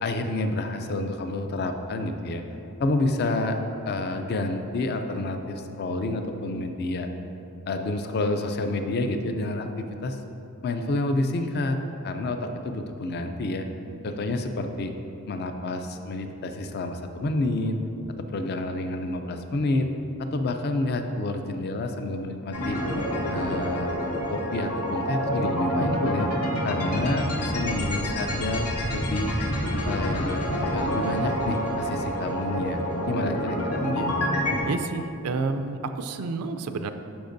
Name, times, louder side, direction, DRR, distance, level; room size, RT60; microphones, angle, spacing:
voice 1, 0.0-2.4 2.8-3.6 3.8-7.1 7.7-10.2 10.6-11.8 12.0-13.6 14.0-14.9 15.3-17.7 18.3-19.9 20.2-22.8 23.3-23.9 24.3-26.3 26.6-29.3 29.9-33.8, left 2 dB, 45° left, 6 dB, 0.4 m, -29 dB
sound 1, 22.5-34.6, equal, 85° left, 1.1 m, -28 dB
voice 2, 33.8-34.1 34.6-36.9, right 4 dB, 80° right, 8 dB, 0.4 m, -30 dB
11.5 x 5.1 x 2.6 m, 2.9 s
head